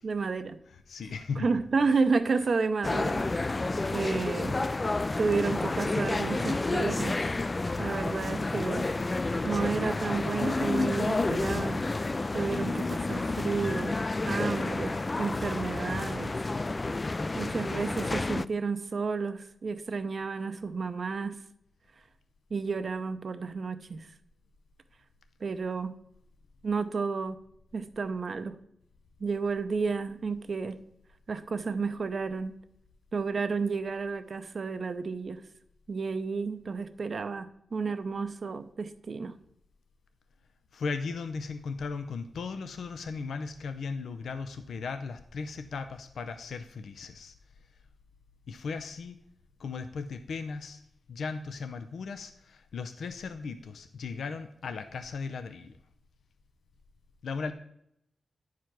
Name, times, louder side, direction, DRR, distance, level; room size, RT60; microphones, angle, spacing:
voice 1, 0.0-0.6 1.4-3.3 3.9-4.6 5.2-7.3 7.8-8.9 9.4-11.8 12.3-14.0 14.2-16.3 17.3-21.4 22.5-24.1 25.4-25.9 26.6-27.4 27.7-28.6 29.2-30.8 31.3-32.5 33.1-35.4 35.9-39.3, right 4 dB, 55° right, 0.6 m, -31 dB
voice 2, 0.7-1.5 40.7-47.3 48.5-49.2 49.6-50.8 51.1-55.8 57.2-57.5, left 4 dB, 90° left, 0.5 m, -37 dB
sound 1, 2.8-18.5, left 2 dB, 30° left, 0.3 m, -30 dB
10.0 x 4.8 x 5.9 m
wide cardioid pair, 95°, 0 cm